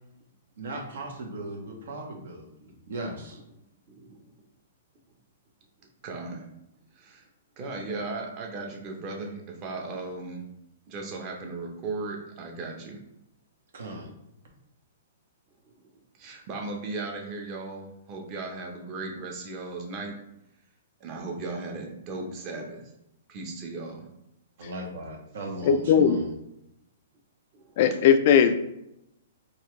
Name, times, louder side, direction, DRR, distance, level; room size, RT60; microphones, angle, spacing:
voice 1, 0.6-3.4 13.7-14.1 24.6-26.3, right 1 dB, 70° right, 0 dB, 1.1 m, -37 dB
voice 2, 3.9-4.3 6.0-6.5 6.9-7.3 7.6-10.5 10.9-13.0 15.6-15.9 16.2-20.2 21.0-22.8 23.3-24.1 27.5-27.8, right 3 dB, 35° right, 1 dB, 0.9 m, -37 dB
voice 3, 25.6-26.2 27.8-28.6, left 7 dB, 50° left, 9 dB, 0.3 m, -19 dB
4.1 x 2.4 x 3.2 m, 0.83 s
hypercardioid pair, 135°, 0 cm